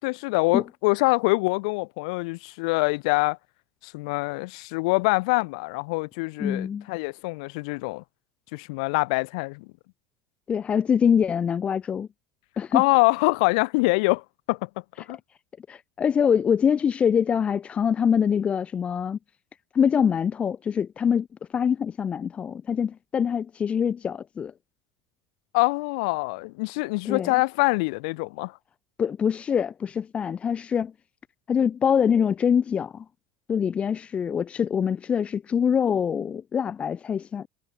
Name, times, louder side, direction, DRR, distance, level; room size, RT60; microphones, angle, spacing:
voice 1, 0.0-3.4 3.8-8.0 8.5-9.7 12.7-14.7 15.1-15.2 25.5-28.5, left 27 dB, 80° left, 5.6 m, -24 dB
voice 2, 6.4-6.8 10.5-12.1 12.6-12.8 15.7-19.2 19.7-21.3 21.5-24.5 27.0-27.3 29.0-30.9 31.5-33.0 33.5-37.5, left 7 dB, 35° left, 3.4 m, -24 dB
supercardioid pair, 100°, 4 cm